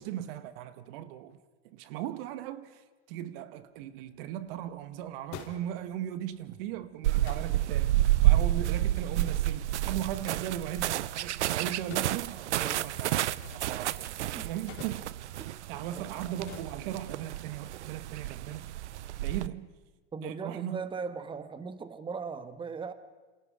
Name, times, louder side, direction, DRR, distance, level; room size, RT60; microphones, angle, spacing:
voice 1, 0.0-1.4 1.7-2.8 3.1-15.1 15.7-18.7 19.2-19.7 20.2-20.8, right 11 dB, 55° right, 1.8 m, -38 dB
sound 1, 3.6-17.7, left 8 dB, 55° left, 3.7 m, -53 dB
sound 2, 7.0-19.5, right 14 dB, 80° right, 0.8 m, -30 dB
voice 2, 20.1-22.9, right 5 dB, 15° right, 1.4 m, -38 dB
28.0 x 27.5 x 5.2 m
hypercardioid pair, 125°, 34 cm